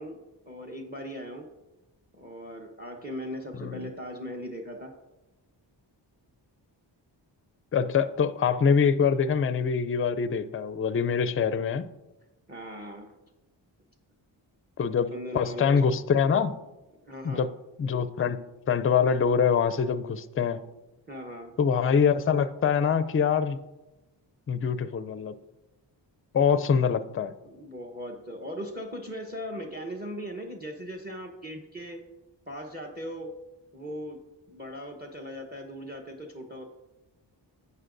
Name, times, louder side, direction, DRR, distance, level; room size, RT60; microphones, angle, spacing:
voice 1, 0.0-1.5 2.1-4.9 12.5-13.2 14.9-15.8 17.0-17.5 21.1-21.5 27.4-32.0 32.5-33.3 33.7-34.2 34.5-36.7, equal, 20° right, 3 dB, 1.1 m, -39 dB
voice 2, 7.7-11.9 14.8-16.5 17.2-17.5 17.8-18.4 18.7-20.6 21.6-23.6 24.5-25.3 26.3-27.3, left 6 dB, 30° left, 13 dB, 0.5 m, -24 dB
11.0 x 8.5 x 2.6 m, 1.0 s
cardioid pair, 65°, 45 cm